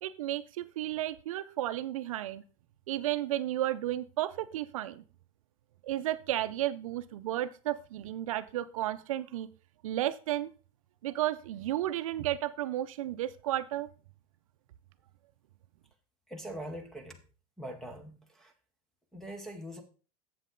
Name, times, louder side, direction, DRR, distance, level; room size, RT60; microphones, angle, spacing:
voice 1, 0.0-2.4 2.9-5.0 5.8-9.5 9.8-10.5 11.0-13.9, right 13 dB, 65° right, 14 dB, 0.6 m, -33 dB
voice 2, 16.3-17.2 17.6-18.5 19.1-19.8, right 1 dB, ahead, 6 dB, 0.7 m, -42 dB
7.6 x 7.5 x 3.8 m, 0.36 s
supercardioid pair, 175°, 18 cm